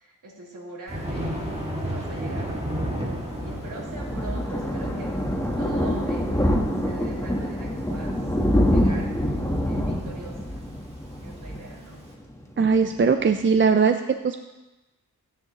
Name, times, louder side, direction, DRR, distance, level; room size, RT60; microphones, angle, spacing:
voice 1, 0.0-8.4 8.6-10.6 11.2-12.0, right 2 dB, 55° right, -5 dB, 3.3 m, -43 dB
Thunder, 0.9-12.0, equal, 15° right, 2.1 m, -34 dB
Thunder 2, 3.0-12.4 12.7-13.0 13.3-13.4 13.6-13.7, equal, 10° left, 1.1 m, -26 dB
voice 2, 12.6-14.4, right 5 dB, 35° right, 6 dB, 0.4 m, -20 dB
15.5 x 9.7 x 3.0 m, 1.1 s
wide cardioid pair, 140°, 37 cm